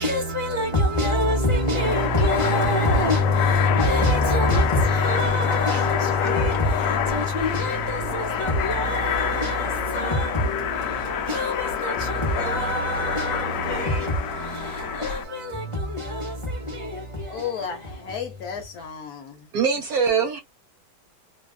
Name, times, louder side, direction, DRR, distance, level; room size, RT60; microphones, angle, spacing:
voice 1, 0.0-17.7, left 1 dB, 40° left, 0.4 m, -25 dB
sound 1, 1.6-15.2, left 9 dB, 90° left, 0.7 m, -27 dB
voice 2, 17.3-19.5, left 7 dB, 65° left, 1.1 m, -33 dB
voice 3, 19.5-20.4, right 6 dB, 70° right, 0.9 m, -23 dB
3.2 x 2.3 x 2.3 m
omnidirectional pair, 2.0 m